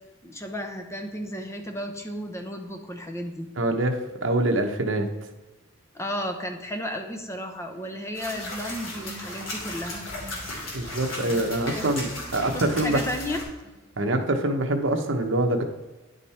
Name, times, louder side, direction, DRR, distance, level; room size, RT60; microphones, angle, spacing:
voice 1, 0.2-3.5 5.9-10.0 11.7-11.9 12.5-13.4, equal, 15° left, 4 dB, 0.9 m, -33 dB
voice 2, 3.6-5.1 10.7-12.1 12.3-13.0 14.0-15.6, right 1 dB, 70° right, 5 dB, 1.0 m, -24 dB
sound 1, 8.1-13.4, left 1 dB, 80° left, 2.6 m, -36 dB
sound 2, 8.3-13.2 13.6-14.0, right 1 dB, 20° right, 1.8 m, -47 dB
10.0 x 5.3 x 4.3 m, 1.2 s
head